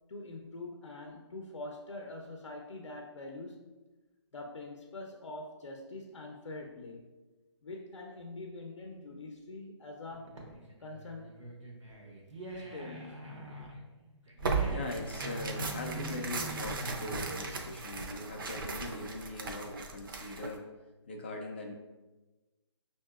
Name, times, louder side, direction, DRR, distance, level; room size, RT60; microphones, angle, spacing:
voice 1, 0.1-3.6 4.3-7.1 7.6-10.4 10.8-11.4 12.5-13.3, left 2 dB, 80° left, 1 dB, 0.6 m, -44 dB
sound 1, 10.1-19.1, right 1 dB, 85° right, 0.9 m, -44 dB
Tearing, 14.4-20.6, right 4 dB, 45° right, 0.5 m, -37 dB
voice 2, 14.7-20.7 21.1-21.7, left 2 dB, 25° left, 1 dB, 0.4 m, -41 dB
5.4 x 2.7 x 2.3 m, 1.2 s
hypercardioid pair, 155°, 15 cm